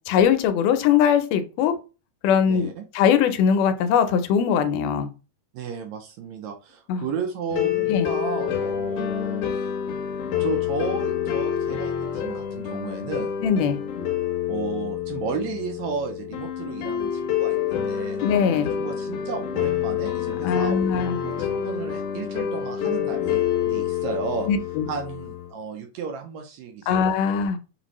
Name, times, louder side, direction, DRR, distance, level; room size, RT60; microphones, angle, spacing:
voice 1, 0.0-1.7 2.2-2.7 2.9-5.1 6.9-7.0 7.9-8.1 13.4-13.8 18.2-18.7 20.4-21.2 24.5-24.9 26.9-27.6, left 7 dB, 85° left, 8 dB, 2.2 m, -21 dB
voice 2, 2.5-2.8 5.5-9.7 10.4-13.3 14.5-18.2 18.7-20.9 21.2-24.5 24.9-27.0, right 6 dB, 80° right, 4 dB, 1.8 m, -33 dB
sound 1, 7.5-25.5, left 9 dB, 70° left, 1.6 m, -27 dB
6.7 x 2.5 x 3.0 m, 0.32 s
omnidirectional pair, 3.6 m